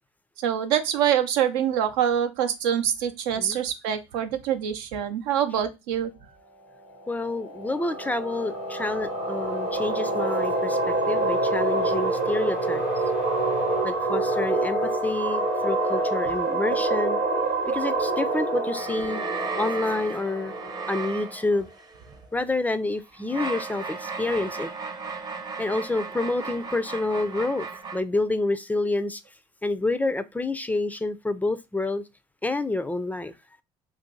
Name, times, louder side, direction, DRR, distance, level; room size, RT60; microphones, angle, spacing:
voice 1, 0.4-6.1, right 9 dB, 80° right, 0.5 m, -25 dB
sound 1, 6.8-21.4, equal, 90° left, 1.0 m, -28 dB
voice 2, 7.1-12.8 13.8-17.2 17.7-19.2 19.6-20.5 20.9-21.7 22.3-24.7 25.6-27.7 27.9-29.2 29.6-32.0 32.4-33.3, left 2 dB, 10° left, 0.4 m, -28 dB
sound 2, 7.7-20.2, right 6 dB, 60° right, 0.8 m, -31 dB
sound 3, 18.7-22.2 23.0-28.0, right 5 dB, 30° right, 0.7 m, -35 dB
2.6 x 2.5 x 3.8 m
hypercardioid pair, 70°, 14 cm